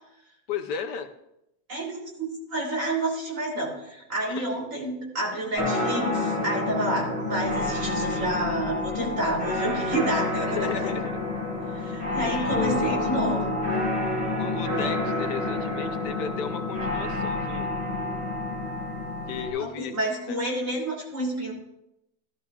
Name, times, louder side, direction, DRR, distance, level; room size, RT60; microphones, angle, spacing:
voice 1, 0.5-1.1 4.3-4.6 10.6-11.3 11.8-12.0 12.2-12.9 14.4-17.7 19.3-19.9 20.3-20.4, left 7 dB, 80° left, 7 dB, 1.4 m, -34 dB
voice 2, 1.7-10.8 11.7-13.4 19.6-21.5, right 1 dB, 50° right, -4 dB, 3.3 m, -29 dB
sound 1, 5.6-19.5, left 2 dB, 15° right, 3.8 m, -28 dB
13.0 x 13.0 x 2.3 m, 0.84 s
omnidirectional pair, 1.8 m